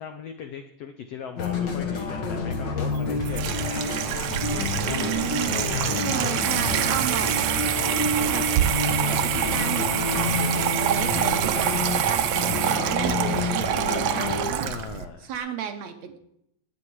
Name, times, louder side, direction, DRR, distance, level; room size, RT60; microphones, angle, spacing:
voice 1, 0.0-6.6 14.6-15.3, left 7 dB, 90° left, 7 dB, 1.4 m, -39 dB
sound 1, 1.4-14.5, left 3 dB, 50° left, 1.3 m, -28 dB
Water tap faucet / Sink (filling or washing), 2.8-15.1, right 11 dB, 85° right, 1.4 m, -26 dB
voice 2, 4.7-5.6 6.0-8.4 9.1-14.7 15.2-16.2, right 8 dB, 65° right, 6 dB, 1.9 m, -33 dB
18.5 x 9.1 x 4.7 m, 0.79 s
omnidirectional pair, 3.9 m